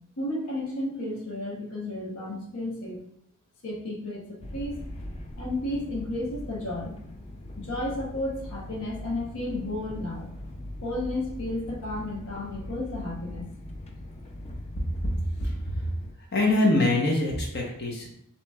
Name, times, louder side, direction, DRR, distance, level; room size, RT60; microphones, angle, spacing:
voice 1, 0.2-3.0 3.6-4.8 5.4-6.9 7.6-10.3 10.8-13.5, left 1 dB, 75° left, -3 dB, 1.0 m, -33 dB
sound 1, 4.4-16.1, left 1 dB, 30° left, 0.5 m, -40 dB
voice 2, 15.4-15.8 16.3-18.1, left 2 dB, 50° left, -1 dB, 0.9 m, -24 dB
6.8 x 2.9 x 2.3 m, 0.73 s
head